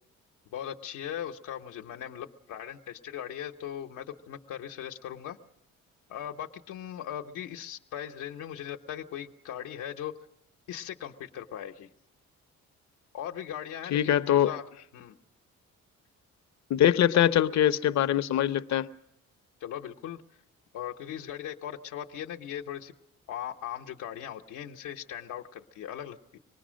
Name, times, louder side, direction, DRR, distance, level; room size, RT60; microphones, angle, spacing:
voice 1, 0.5-5.4 6.1-10.1 10.7-11.9 13.1-15.2 19.6-20.2 20.7-22.9 23.3-26.4, left 10 dB, 90° left, 1.0 m, -39 dB
voice 2, 13.9-14.5 16.7-18.9, left 11 dB, 65° left, 0.8 m, -23 dB
25.0 x 19.5 x 6.3 m
cardioid pair, 90°, 30 cm